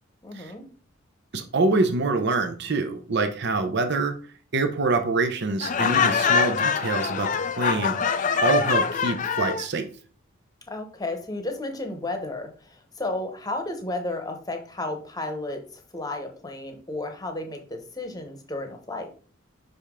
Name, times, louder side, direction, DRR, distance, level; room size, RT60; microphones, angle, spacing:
voice 1, 0.2-0.6 10.7-19.1, left 2 dB, 20° left, 5 dB, 0.9 m, -33 dB
voice 2, 1.3-4.1 4.5-7.3 7.6-8.0 8.4-9.9, right 3 dB, 55° right, 7 dB, 0.7 m, -25 dB
Laughter, 5.6-9.7, left 6 dB, 40° left, 0.4 m, -24 dB
5.6 x 5.1 x 3.7 m, 0.41 s
head